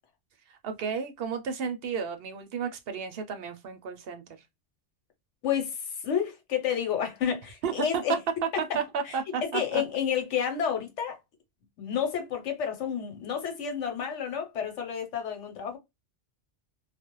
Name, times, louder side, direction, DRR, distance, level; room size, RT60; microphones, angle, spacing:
voice 1, 0.5-4.4 7.6-8.2 8.6-9.8, right 6 dB, 65° right, 0.7 m, -32 dB
voice 2, 5.4-8.1 8.7-8.8 9.1-9.2 9.5-11.2 11.8-15.8, left 8 dB, 90° left, 1.1 m, -30 dB
2.4 x 2.0 x 2.9 m
omnidirectional pair, 1.2 m